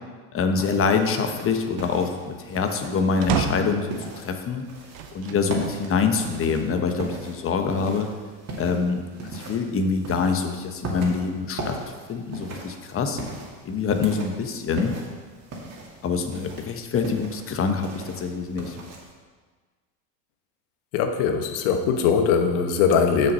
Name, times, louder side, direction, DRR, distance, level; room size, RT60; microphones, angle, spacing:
voice 1, 0.3-4.7 5.1-8.1 8.6-9.0 9.3-11.8 12.1-13.2 13.6-14.9 16.0-18.8, left 5 dB, 30° left, 6 dB, 1.0 m, -25 dB
sound 1, 0.6-19.1, right 2 dB, 35° right, 2.2 m, -39 dB
sound 2, 3.2-3.9 4.9-5.5 6.1-6.2 7.5-8.2, right 8 dB, 50° right, 0.9 m, -29 dB
voice 2, 20.9-23.3, left 6 dB, 65° left, 6 dB, 1.2 m, -21 dB
6.9 x 6.6 x 5.5 m, 1.4 s
hypercardioid pair, 95°, 42 cm